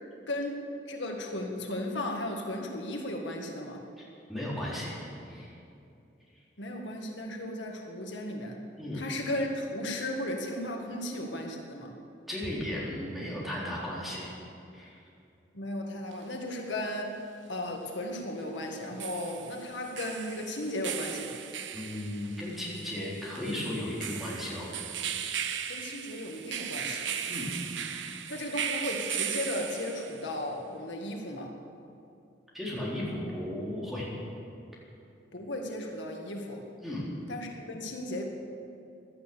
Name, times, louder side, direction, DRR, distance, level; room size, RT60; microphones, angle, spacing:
voice 1, 0.3-3.8 6.6-8.6 8.9-11.9 15.5-17.2 17.5-21.4 25.7-27.1 28.3-31.6 35.3-36.7 37.3-38.2, left 1 dB, 85° left, 1 dB, 1.8 m, -35 dB
voice 2, 4.3-5.0 5.3-5.5 8.8-9.0 12.3-14.3 14.7-14.9 21.7-24.7 27.3-27.5 32.5-34.1 36.8-37.1, left 1 dB, ahead, -7 dB, 4.0 m, -35 dB
sound 1, 16.1-16.2 18.7-30.3, right 8 dB, 85° right, 0.9 m, -37 dB
16.5 x 12.0 x 7.0 m, 2.6 s
head